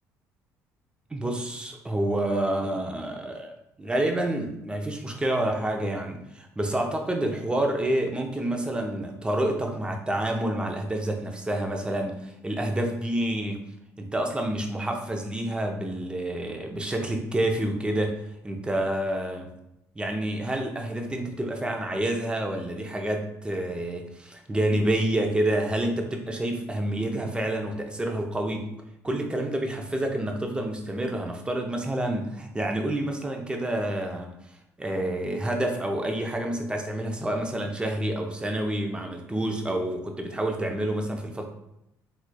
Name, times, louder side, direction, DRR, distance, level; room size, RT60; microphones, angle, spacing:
voice 1, 1.1-13.6 14.0-18.2 18.4-19.5 20.0-28.7 29.0-34.3 34.8-41.4, right 1 dB, 15° right, 2 dB, 0.6 m, -28 dB
3.8 x 3.0 x 2.2 m, 0.82 s
cardioid pair, 90°, 7 cm